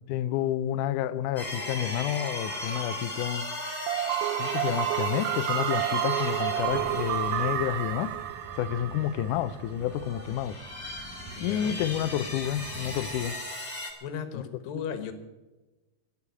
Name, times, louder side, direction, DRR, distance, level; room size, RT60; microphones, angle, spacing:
voice 1, 0.1-3.5 4.4-8.2 8.6-10.6 11.4-13.4 14.3-14.4, left 11 dB, 85° left, 1.8 m, -30 dB
sound 1, 1.4-9.3 9.8-13.9, left 1 dB, 15° left, 1.5 m, -37 dB
sound 2, 3.9-9.7, right 14 dB, 80° right, 2.4 m, -30 dB
sound 3, 6.5-13.2, right 1 dB, 5° right, 1.0 m, -45 dB
voice 2, 11.4-11.8 14.0-15.1, left 7 dB, 70° left, 2.9 m, -36 dB
13.0 x 10.0 x 9.5 m
omnidirectional pair, 4.4 m